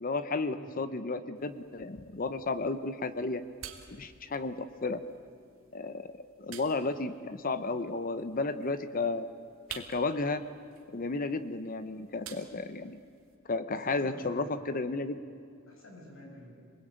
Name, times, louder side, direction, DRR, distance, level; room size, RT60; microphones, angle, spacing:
voice 1, 0.0-3.4 3.9-5.0 5.7-9.3 9.7-10.4 10.9-13.0 13.5-15.2, left 3 dB, 45° left, 12 dB, 0.8 m, -33 dB
sound 1, 1.3-13.4, right 8 dB, 80° right, 2.5 m, -52 dB
voice 2, 13.7-14.5 15.6-16.5, left 1 dB, 75° left, -1 dB, 7.4 m, -49 dB
27.0 x 20.5 x 8.9 m, 2.4 s
head